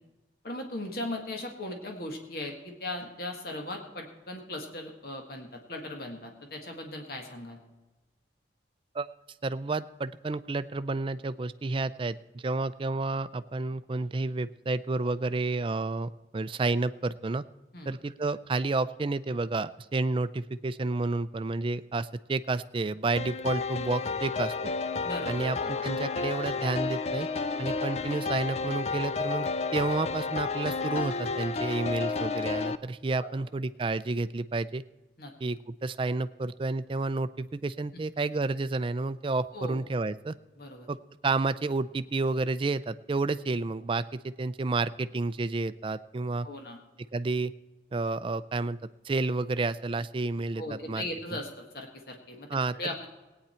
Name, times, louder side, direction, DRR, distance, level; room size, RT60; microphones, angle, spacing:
voice 1, 0.4-7.6 17.7-18.0 25.0-25.7 33.2-33.5 35.2-35.3 37.9-38.0 39.5-39.8 40.6-40.9 46.4-46.8 50.5-52.5 52.7-53.1, left 1 dB, 60° left, 3 dB, 1.7 m, -38 dB
voice 2, 9.4-17.4 17.9-24.7 25.3-27.3 27.6-34.8 35.4-40.3 40.9-41.0 41.2-46.5 47.1-47.5 47.9-50.6 50.9-51.0 52.5-52.8, right 3 dB, 30° right, 14 dB, 0.4 m, -30 dB
sound 1, 23.2-32.8, left 4 dB, 40° left, 0.4 m, -31 dB
17.5 x 9.4 x 4.4 m, 1.2 s
head